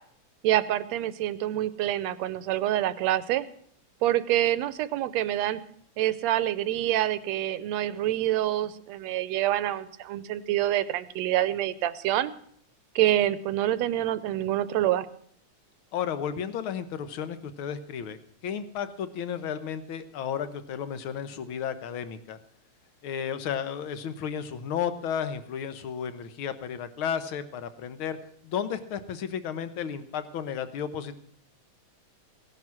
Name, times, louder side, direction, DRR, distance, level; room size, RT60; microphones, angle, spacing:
voice 1, 0.4-3.5 4.0-5.6 6.0-12.3 13.0-15.1, right 13 dB, 75° right, 15 dB, 1.9 m, -26 dB
voice 2, 15.9-18.2 18.4-22.4 23.0-28.2 28.4-31.2, left 8 dB, 60° left, 12 dB, 1.5 m, -33 dB
17.5 x 11.0 x 6.0 m, 0.63 s
omnidirectional pair, 3.3 m